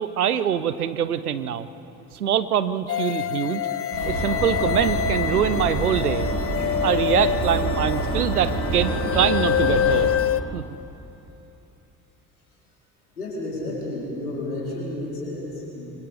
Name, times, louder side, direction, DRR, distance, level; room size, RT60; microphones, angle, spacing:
voice 1, 0.0-1.7 2.1-3.6 4.1-6.3 6.8-10.1 10.5-10.6, right 9 dB, 90° right, 14 dB, 0.7 m, -24 dB
sound 1, 2.9-10.4, left 10 dB, 30° left, 0.7 m, -26 dB
sound 2, 3.9-10.0, right 2 dB, 70° right, 6.3 m, -28 dB
voice 2, 13.2-16.1, left 1 dB, 90° left, -4 dB, 4.4 m, -32 dB
26.0 x 24.0 x 5.0 m, 2.9 s
figure-of-eight pair, 50°, 43 cm